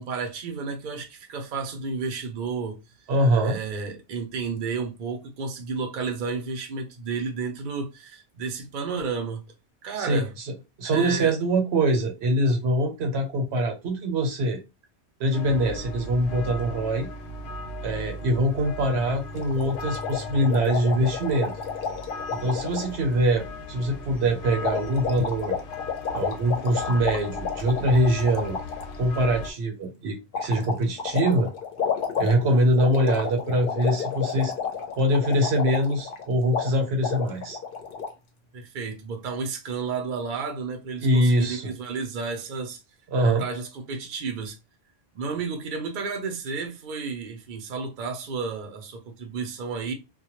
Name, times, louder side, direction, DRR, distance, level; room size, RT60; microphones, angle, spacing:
voice 1, 0.0-2.8 3.4-9.4 9.8-10.3 10.9-11.4 38.5-42.8 43.2-44.6 45.1-49.9, right 5 dB, 55° right, 0.7 m, -32 dB
voice 2, 3.1-3.6 10.0-10.5 10.8-14.6 15.2-17.1 17.8-21.5 22.3-25.6 26.1-28.6 29.0-31.5 32.2-34.5 35.0-37.6 41.0-41.7 43.1-43.4, right 1 dB, 75° right, 1.0 m, -23 dB
sound 1, 15.3-29.5, left 2 dB, 85° left, 0.9 m, -38 dB
sound 2, 19.3-23.0 24.6-28.9 30.3-36.2 36.5-36.7 37.0-38.1, left 6 dB, 60° left, 0.7 m, -31 dB
2.2 x 2.2 x 2.9 m
omnidirectional pair, 1.1 m